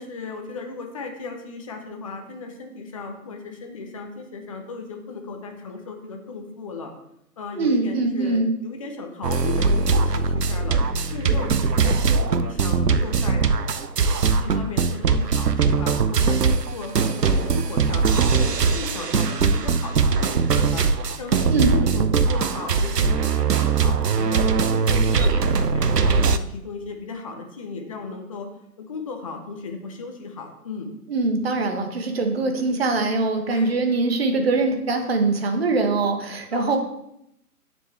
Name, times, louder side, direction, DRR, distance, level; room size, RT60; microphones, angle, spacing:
voice 1, 0.0-6.9 7.4-10.8 11.1-13.4 14.4-18.0 18.4-24.4 24.7-28.5 28.8-30.9 33.5-33.8 36.5-36.8, left 4 dB, 20° left, 3 dB, 0.7 m, -36 dB
voice 2, 7.6-8.5 21.5-21.7 31.1-36.8, right 3 dB, 40° right, 5 dB, 1.2 m, -22 dB
sound 1, 9.2-26.4, right 5 dB, 85° right, 0.6 m, -21 dB
9.6 x 7.2 x 3.3 m, 0.79 s
figure-of-eight pair, 135°, 46 cm